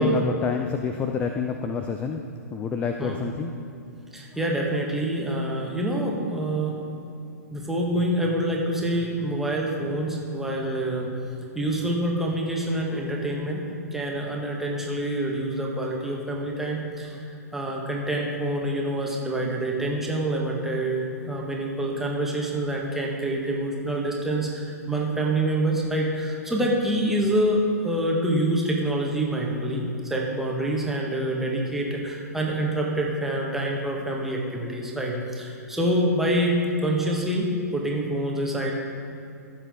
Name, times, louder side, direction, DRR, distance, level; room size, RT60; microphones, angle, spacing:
voice 1, 0.0-2.2 2.5-3.5, left 5 dB, 15° left, 5 dB, 0.4 m, -28 dB
voice 2, 4.1-6.7 7.5-11.1 11.5-13.6 13.9-17.3 17.5-38.7, right 1 dB, 5° right, -2 dB, 1.5 m, -26 dB
15.0 x 7.3 x 3.7 m, 2.7 s
figure-of-eight pair, 115°, 9 cm